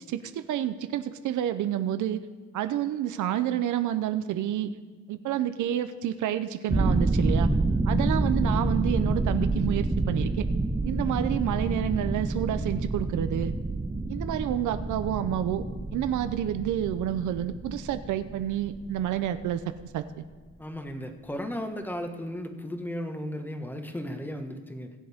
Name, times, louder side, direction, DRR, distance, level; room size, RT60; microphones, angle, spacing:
voice 1, 0.0-2.2 2.5-4.7 5.1-7.5 7.9-10.5 10.8-13.5 14.1-15.6 15.9-19.6 19.9-20.2, right 11 dB, 75° right, 10 dB, 0.7 m, -29 dB
sound 1, 6.7-19.8, right 2 dB, 10° right, 0.5 m, -28 dB
voice 2, 20.6-24.9, equal, 5° left, 5 dB, 1.4 m, -35 dB
20.0 x 7.8 x 3.6 m, 1.4 s
cardioid pair, 90°, 30 cm